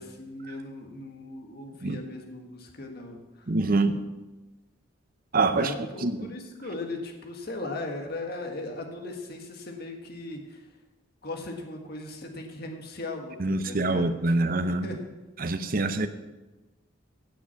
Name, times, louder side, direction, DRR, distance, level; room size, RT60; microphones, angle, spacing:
voice 1, 0.0-3.5 5.5-10.7 11.2-13.4 13.6-14.1 14.6-15.0 15.4-15.7 16.0-16.1, left 2 dB, 50° left, 1.7 m, -38 dB
voice 2, 3.5-4.0 5.3-5.7 6.0-6.3 13.4-14.9 15.4-16.1, right 3 dB, 45° right, 0.7 m, -25 dB
17.0 x 6.0 x 5.8 m
head